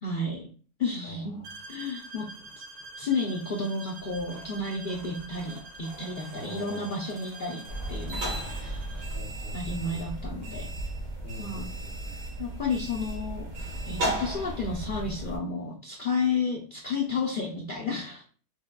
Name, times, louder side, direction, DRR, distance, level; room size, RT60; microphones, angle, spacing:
voice 1, 0.0-0.4 0.8-1.4 1.7-2.3 3.0-7.6 7.9-8.7 9.5-10.7 11.4-11.7 12.4-13.5 13.9-18.3, left 3 dB, 85° left, -2 dB, 0.4 m, -31 dB
voice 2, 1.0-1.5 2.0-2.3 2.9-3.0 6.3-6.9 8.3-10.0 11.2-12.2, equal, 45° left, 1 dB, 0.8 m, -45 dB
sound 1, 1.4-9.2, right 3 dB, 80° right, 1.3 m, -46 dB
sound 2, 4.0-9.6 10.1-10.3 11.6-11.7 11.9-12.0 12.3-12.5, right 2 dB, 35° right, 0.7 m, -51 dB
sound 3, 7.7-15.4, right 1 dB, 60° right, 1.5 m, -34 dB
5.8 x 2.3 x 2.3 m, 0.40 s
omnidirectional pair, 1.7 m